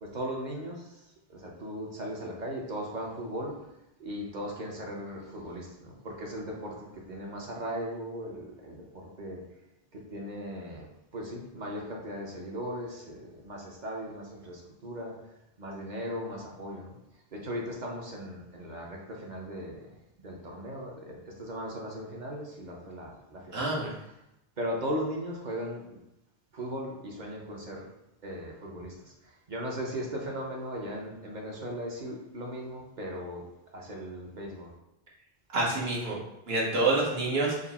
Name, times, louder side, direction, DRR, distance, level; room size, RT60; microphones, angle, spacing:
voice 1, 0.0-3.6 4.0-9.4 9.9-15.2 15.6-17.0 17.3-19.9 20.2-24.0 24.6-26.0 26.5-27.9 28.2-33.4 33.7-34.7, equal, 50° right, -1 dB, 0.9 m, -38 dB
voice 2, 23.5-23.9 35.5-36.2 36.5-37.5, right 2 dB, 75° right, -4 dB, 1.3 m, -27 dB
5.0 x 2.0 x 4.0 m, 0.87 s
omnidirectional pair, 1.0 m